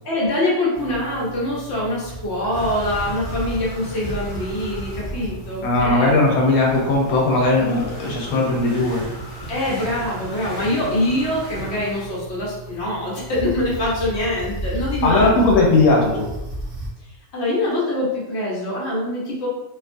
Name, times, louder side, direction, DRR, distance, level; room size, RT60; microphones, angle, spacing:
voice 1, 0.0-6.2 9.5-15.5 17.3-19.5, left 1 dB, 60° left, -5 dB, 0.9 m, -24 dB
sound 1, 0.7-16.9, right 2 dB, 30° right, 1.0 m, -34 dB
sound 2, 2.5-12.1, equal, 30° left, 0.4 m, -37 dB
voice 2, 5.6-9.0 15.0-16.3, left 2 dB, 90° left, -1 dB, 1.0 m, -18 dB
2.4 x 2.3 x 2.5 m, 0.98 s
omnidirectional pair, 1.4 m